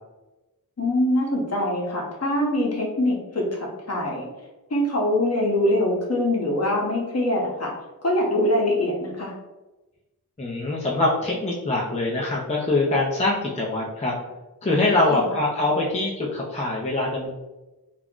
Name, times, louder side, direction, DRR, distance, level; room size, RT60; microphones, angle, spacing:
voice 1, 0.8-4.2 4.7-7.7 8.0-9.3 15.1-15.3, left 1 dB, 45° left, -2 dB, 0.9 m, -23 dB
voice 2, 10.4-14.2 14.6-17.3, left 2 dB, 20° left, -4 dB, 0.5 m, -23 dB
2.4 x 2.1 x 3.5 m, 1.1 s
wide cardioid pair, 55°, 36 cm